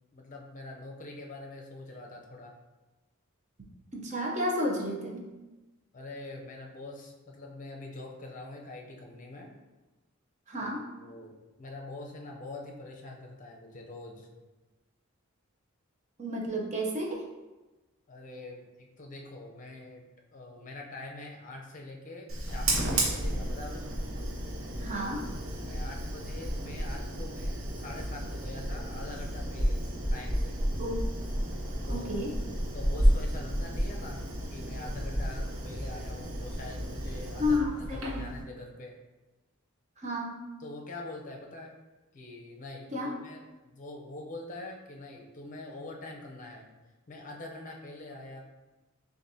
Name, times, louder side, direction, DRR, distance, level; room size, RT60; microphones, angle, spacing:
voice 1, 0.1-2.5 5.9-9.5 10.6-10.7 11.0-14.3 18.1-20.0 20.3-23.9 24.9-25.1 25.4-30.6 31.8-32.3 32.7-34.2 34.5-39.0 40.6-41.7 42.1-46.7 47.1-48.4, left 2 dB, 40° left, 1 dB, 0.7 m, -44 dB
voice 2, 3.9-5.2 10.5-10.8 16.2-17.2 24.8-25.2 30.8-31.0 31.9-32.3 37.4-38.3 40.0-40.4 42.9-43.1, left 1 dB, 35° right, -1 dB, 0.8 m, -31 dB
Fire, 22.3-38.4, equal, 75° right, 0.9 m, -32 dB
6.4 x 2.5 x 2.8 m, 1.1 s
head